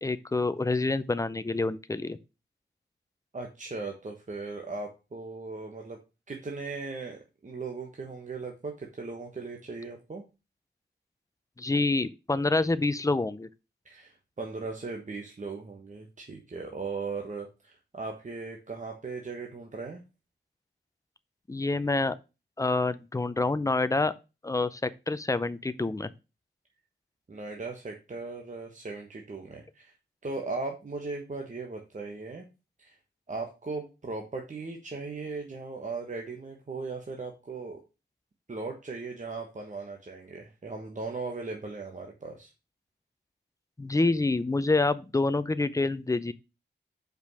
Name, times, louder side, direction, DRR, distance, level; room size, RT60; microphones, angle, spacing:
voice 1, 0.0-2.2 11.6-13.5 21.5-22.1 22.6-24.1 24.4-26.1 43.8-46.3, left 3 dB, 15° left, 0.5 m, -27 dB
voice 2, 3.3-6.0 6.3-10.2 13.8-20.0 27.3-29.9 30.2-32.5 32.8-33.0 33.3-37.8 38.5-42.5, right 3 dB, 40° right, 1.3 m, -38 dB
5.2 x 5.2 x 6.2 m
wide cardioid pair, 100°, 19 cm